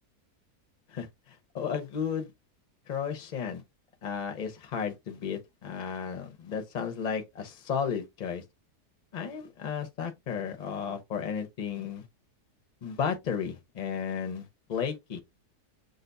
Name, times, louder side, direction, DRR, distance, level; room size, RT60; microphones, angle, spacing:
voice 1, 0.9-2.3 2.9-3.6 4.0-8.4 9.1-12.0 12.8-15.2, left 7 dB, 40° left, 0.6 m, -34 dB
6.4 x 2.3 x 2.5 m
omnidirectional pair, 1.7 m